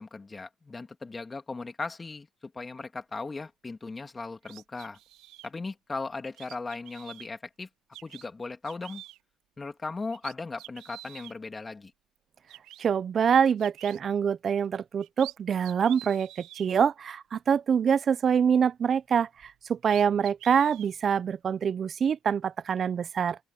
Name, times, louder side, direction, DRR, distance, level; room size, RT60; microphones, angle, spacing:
voice 1, 0.0-5.0 5.4-7.7 8.0-9.0 9.6-11.9, left 3 dB, 25° left, 2.8 m, -37 dB
sound 1, 4.4-5.5 6.3-7.3 7.9-8.2 8.6-9.2 9.7-9.8 10.1-11.4 12.2-12.3 12.5-12.9 13.6-14.0 14.8-15.3 15.6-16.7 19.4-19.5 19.9-20.9, right 15 dB, 85° right, 5.0 m, -47 dB
voice 2, 12.8-23.4, right 7 dB, 50° right, 0.6 m, -25 dB
open air
cardioid pair, 85°, 0 cm